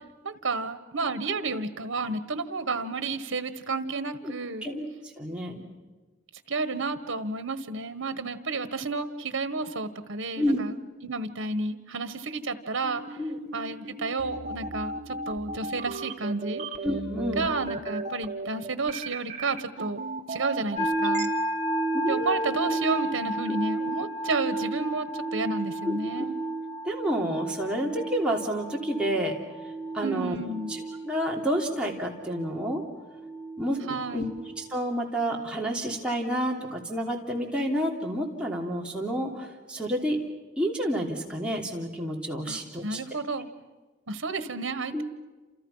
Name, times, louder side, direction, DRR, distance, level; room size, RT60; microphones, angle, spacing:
voice 1, 0.2-4.7 6.5-10.8 11.0-13.0 13.5-16.6 17.3-21.3 22.1-26.3 30.0-30.7 33.9-34.3 42.5-43.5 44.1-45.0, right 3 dB, 85° right, 12 dB, 1.4 m, -31 dB
voice 2, 5.2-5.6 10.4-10.6 13.2-13.4 16.8-17.5 21.9-22.5 23.5-23.6 25.8-26.2 26.8-29.3 29.9-30.3 31.0-32.8 33.6-34.2 34.6-40.2 40.6-43.0 44.9-45.0, equal, 5° right, -3 dB, 3.2 m, -29 dB
sound 1, 12.8-21.3, right 2 dB, 35° right, 1.4 m, -35 dB
sound 2, 20.8-34.7, right 1 dB, 35° left, 3.2 m, -32 dB
29.0 x 28.0 x 5.7 m, 1.3 s
head